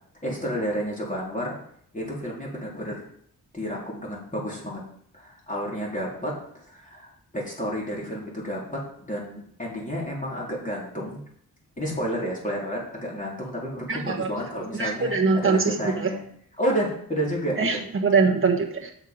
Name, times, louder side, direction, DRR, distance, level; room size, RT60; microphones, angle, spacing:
voice 1, 0.2-1.6 1.9-3.0 3.5-4.8 5.1-11.2 11.8-16.2 16.6-17.8, equal, 20° left, -4 dB, 3.8 m, -31 dB
voice 2, 13.9-14.3 14.7-16.1 17.6-18.9, right 4 dB, 35° right, 0 dB, 1.3 m, -23 dB
7.4 x 6.4 x 5.3 m, 0.66 s
cardioid pair, 60°, 37 cm